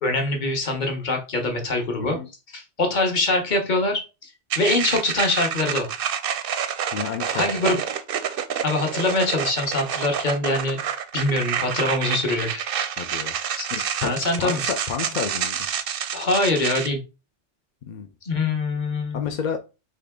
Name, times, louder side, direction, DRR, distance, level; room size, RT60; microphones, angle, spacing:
voice 1, 0.0-2.2 2.5-4.0 4.6-5.9 7.3-7.8 8.6-10.8 11.1-12.6 13.6-13.7 14.0-14.6 16.1-17.0 18.2-19.4, left 2 dB, 40° left, 3 dB, 1.1 m, -23 dB
sound 1, 4.5-16.9, right 8 dB, 60° right, 0.6 m, -28 dB
voice 2, 6.9-7.8 13.0-13.3 13.7-15.7 17.9-18.1 19.1-19.6, left 7 dB, 60° left, 5 dB, 0.5 m, -31 dB
3.7 x 3.4 x 3.5 m, 0.29 s
omnidirectional pair, 1.2 m